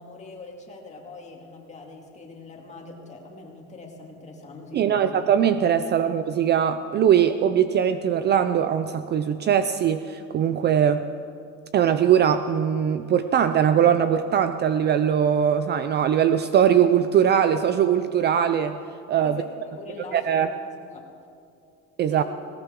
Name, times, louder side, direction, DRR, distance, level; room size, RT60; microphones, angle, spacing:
voice 1, 0.0-5.2 5.8-5.9 19.2-21.1 22.1-22.2, left 3 dB, 25° left, 0 dB, 2.3 m, -42 dB
voice 2, 4.7-11.0 11.7-18.8 19.1-19.4 20.1-20.5 22.0-22.2, right 9 dB, 35° right, 11 dB, 0.5 m, -21 dB
20.0 x 18.0 x 3.7 m, 2.4 s
cardioid pair, 145°, 29 cm